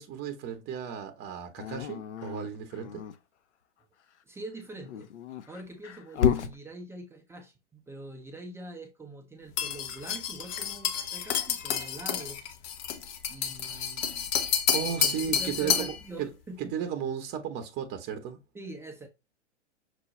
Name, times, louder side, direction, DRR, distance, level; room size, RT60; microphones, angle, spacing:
voice 1, 0.0-3.0 14.7-15.9 16.2-16.3 16.6-18.4, right 8 dB, 30° right, 0.8 m, -34 dB
Dog, 1.6-3.2 4.7-6.6, left 8 dB, 70° left, 0.7 m, -31 dB
voice 2, 4.2-5.1 5.5-12.5 13.3-14.3 14.9-16.7 18.5-19.1, right 1 dB, 5° right, 0.5 m, -44 dB
sound 1, 9.6-16.0, left 8 dB, 35° left, 0.7 m, -30 dB
6.1 x 2.2 x 3.0 m
hypercardioid pair, 110°, 36 cm